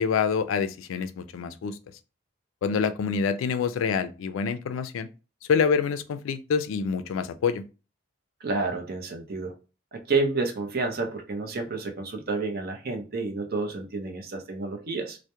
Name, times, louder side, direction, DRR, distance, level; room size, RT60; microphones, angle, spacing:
voice 1, 0.0-1.8 2.6-5.1 5.5-7.6, left 6 dB, 80° left, 0.3 m, -26 dB
voice 2, 8.4-9.5 9.9-15.2, right 3 dB, 50° right, 0.6 m, -30 dB
2.2 x 2.1 x 2.8 m
head